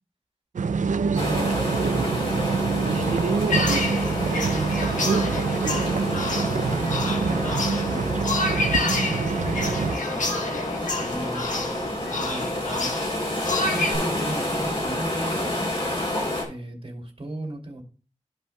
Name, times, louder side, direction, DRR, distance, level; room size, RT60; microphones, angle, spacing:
sound 1, 0.6-10.0, right 5 dB, 80° right, 0.5 m, -25 dB
voice 1, 1.1-3.4 3.7-5.3 5.8-8.1 8.7-13.0 13.6-15.8 16.5-17.8, right 1 dB, 45° right, 2 dB, 2.6 m, -37 dB
sound 2, 1.2-16.4, left 1 dB, 50° left, 3.2 m, -29 dB
sound 3, 3.5-13.9, left 2 dB, 85° left, 1.4 m, -29 dB
14.0 x 5.4 x 2.2 m, 0.37 s
wide cardioid pair, 95°, 13 cm